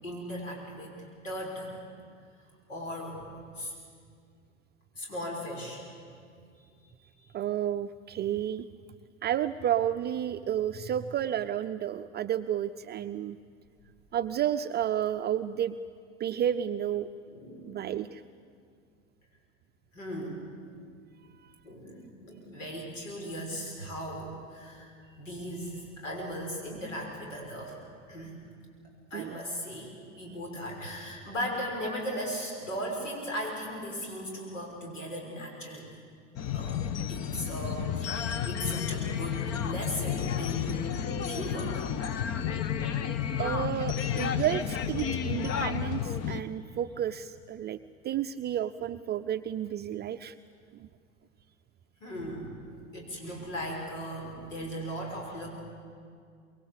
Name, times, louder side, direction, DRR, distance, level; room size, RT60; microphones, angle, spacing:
voice 1, 0.0-1.8 2.7-3.3 3.6-3.7 4.9-5.8 6.5-6.7 7.0-7.3 17.3-17.8 19.9-20.5 21.6-27.8 28.1-28.4 29.1-36.0 36.5-36.8 37.1-41.9 52.0-52.5 52.9-55.5, equal, 80° left, 0 dB, 6.2 m, -37 dB
voice 2, 7.3-8.7 9.2-13.4 14.1-15.8 16.2-17.1 17.7-18.2 21.4-21.5 29.1-29.4 30.3-30.4 43.4-47.8 48.0-50.4 50.8-50.9, right 10 dB, 25° right, 9 dB, 0.5 m, -31 dB
sound 1, 36.4-46.4, left 8 dB, 40° left, 1.2 m, -31 dB
24.0 x 22.0 x 8.4 m, 2.3 s
hypercardioid pair, 80°, 37 cm